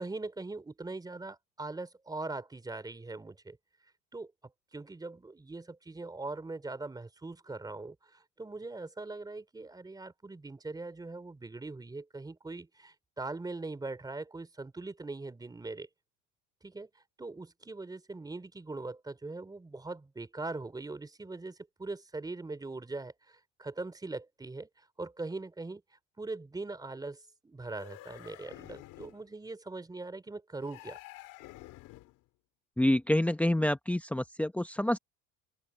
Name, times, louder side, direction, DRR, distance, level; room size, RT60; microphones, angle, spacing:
voice 1, 0.0-3.6 4.1-4.3 4.7-15.9 16.6-16.9 17.2-31.0, right 3 dB, 10° right, 3.4 m, -41 dB
sound 1, 27.6-29.3 30.6-32.2, left 18 dB, 65° left, 2.6 m, -50 dB
voice 2, 32.8-35.0, left 1 dB, 5° left, 0.8 m, -27 dB
open air
cardioid pair, 135°, 34 cm